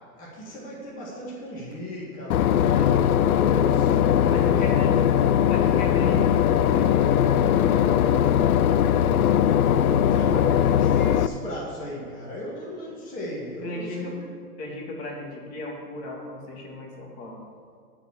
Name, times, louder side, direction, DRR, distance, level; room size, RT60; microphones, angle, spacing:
voice 1, 0.1-5.5 9.9-14.3, equal, 20° left, -6 dB, 1.9 m, -36 dB
Boat Water vehicle / Engine, 2.3-11.3, left 9 dB, 70° left, 0.6 m, -20 dB
voice 2, 4.1-5.0 5.5-8.3 13.6-14.1 14.6-17.4, left 1 dB, 40° left, -1 dB, 2.3 m, -36 dB
13.5 x 4.7 x 7.4 m, 2.1 s
hypercardioid pair, 150°, 46 cm